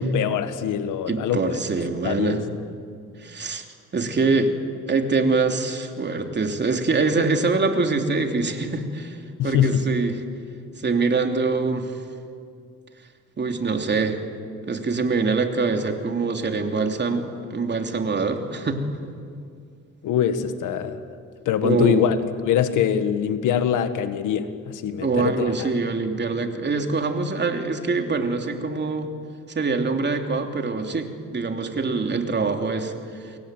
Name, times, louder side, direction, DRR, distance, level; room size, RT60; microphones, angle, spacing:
voice 1, 0.0-1.4 2.0-2.4 9.4-9.9 20.0-21.0 21.5-22.2 22.4-25.7, left 9 dB, 85° left, 10 dB, 1.9 m, -23 dB
voice 2, 1.1-2.4 3.2-3.6 3.9-4.5 4.9-9.2 9.4-10.2 10.8-11.9 13.4-14.2 14.6-18.8 21.6-22.0 25.0-29.1 29.5-32.9, right 4 dB, 35° right, 4 dB, 3.2 m, -24 dB
29.5 x 22.0 x 9.2 m, 2.2 s
cardioid pair, 90°, 30 cm